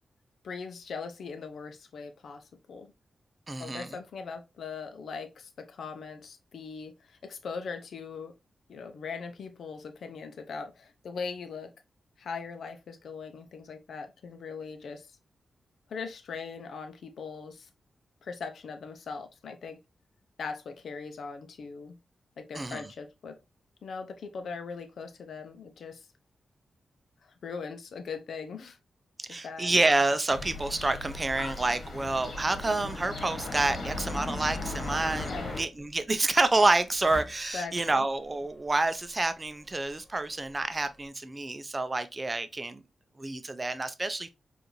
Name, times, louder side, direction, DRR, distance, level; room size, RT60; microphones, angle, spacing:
voice 1, 0.4-2.9 3.6-8.3 8.7-11.7 12.2-15.1 15.9-17.7 18.2-19.8 20.4-22.0 22.4-23.4 23.8-26.1 27.2-28.8 29.2-29.7 35.2-35.6 37.5-38.1, left 5 dB, 80° left, 0.6 m, -40 dB
voice 2, 3.5-4.0 22.5-22.9 29.2-42.8 43.2-44.3, right 2 dB, 25° right, 0.5 m, -28 dB
sound 1, 30.3-35.6, left 2 dB, 55° left, 1.5 m, -37 dB
sound 2, 34.9-41.1, left 1 dB, 25° left, 0.9 m, -52 dB
4.9 x 2.5 x 3.0 m
wide cardioid pair, 100°, 0 cm